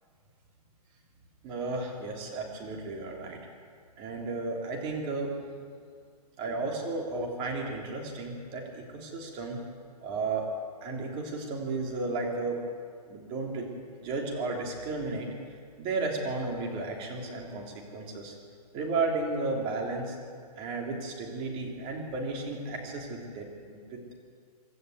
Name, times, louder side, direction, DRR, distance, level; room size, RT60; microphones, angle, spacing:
voice 1, 1.4-3.4 4.0-5.3 6.4-9.6 10.0-10.5 10.8-12.6 13.1-13.7 14.0-15.3 15.8-18.4 18.7-20.2 20.5-24.1, right 3 dB, 25° right, 0 dB, 3.5 m, -33 dB
25.5 x 13.0 x 8.1 m, 2.1 s
hypercardioid pair, 150°, 21 cm